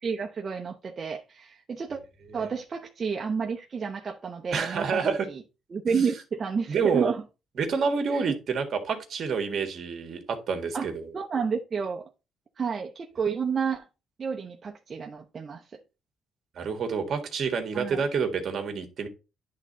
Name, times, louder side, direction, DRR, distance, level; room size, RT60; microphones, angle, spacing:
voice 1, 0.0-2.0 2.3-5.0 5.3-5.4 5.7-7.2 8.1-8.4 10.7-10.9 11.1-12.1 12.6-13.9 14.2-15.6 17.7-18.0, right 6 dB, 40° right, 0.8 m, -30 dB
voice 2, 4.5-5.3 6.7-7.1 7.6-11.1 16.5-19.1, right 5 dB, 60° right, 1.7 m, -28 dB
10.5 x 3.8 x 4.1 m
cardioid pair, 90°, 0 cm